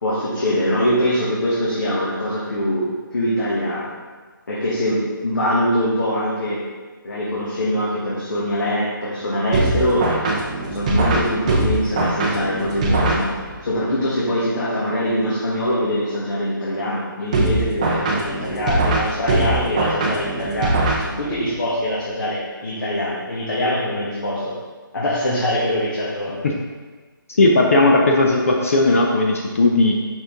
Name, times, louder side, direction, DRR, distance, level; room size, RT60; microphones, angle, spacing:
voice 1, 0.0-3.9 4.5-6.6 7.0-10.1 10.7-24.5 24.9-26.4, equal, 60° left, -8 dB, 1.6 m, -23 dB
sound 1, 9.5-13.7 17.3-21.5, right 2 dB, 20° right, 0.5 m, -22 dB
voice 2, 27.3-29.9, left 2 dB, 40° left, 0 dB, 0.5 m, -16 dB
5.3 x 4.7 x 3.8 m, 1.4 s
hypercardioid pair, 165°, 12 cm